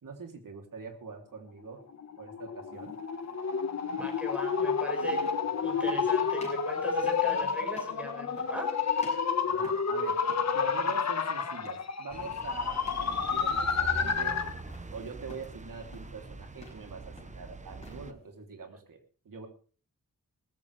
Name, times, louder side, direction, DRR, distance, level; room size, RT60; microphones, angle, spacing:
voice 1, 0.0-1.8 2.2-3.0 9.5-10.2 10.5-14.4 14.9-19.0 19.2-19.5, right 5 dB, 70° right, 4 dB, 3.2 m, -44 dB
sound 1, 1.9-14.6, left 5 dB, 50° left, 1.4 m, -30 dB
sound 2, 2.8-3.0 4.3-4.4 5.0-5.5 5.8-6.1 6.4-6.7 7.0-7.3 7.7-8.0 8.4-8.7 9.0-10.0 10.3-10.6 10.8-11.1 11.6-11.9 12.2-12.5 12.8-13.1 13.4-13.8 14.1-14.9 15.3-15.6 15.9-16.2 16.5-16.9 17.2-18.0, left 2 dB, 20° left, 7.1 m, -52 dB
voice 2, 4.0-5.3 5.6-8.7, equal, 5° right, 2 dB, 5.2 m, -40 dB
sound 3, 12.1-18.1, right 3 dB, 20° right, 0.9 m, -44 dB
19.5 x 15.0 x 3.4 m, 0.39 s
wide cardioid pair, 175°, 34 cm